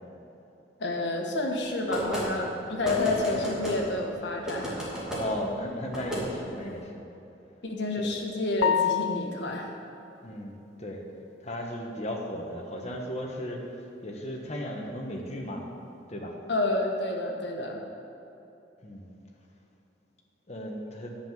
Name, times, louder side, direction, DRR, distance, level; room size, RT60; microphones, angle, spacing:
voice 1, 0.8-4.7 7.6-9.7 16.5-17.8, left 2 dB, 70° left, 0 dB, 1.4 m, -29 dB
sound 1, 1.9-2.3 2.8-3.8 4.5-5.2 5.9-6.2, right 1 dB, 5° right, 2.3 m, -32 dB
voice 2, 5.1-7.0 10.2-11.0 11.4-13.6 14.0-15.6 16.1-16.4 18.8-19.1 20.5-21.2, equal, 35° left, 0 dB, 1.3 m, -35 dB
sound 2, 8.6-9.7, left 8 dB, 90° left, 0.4 m, -27 dB
10.5 x 5.7 x 7.6 m, 2.8 s
head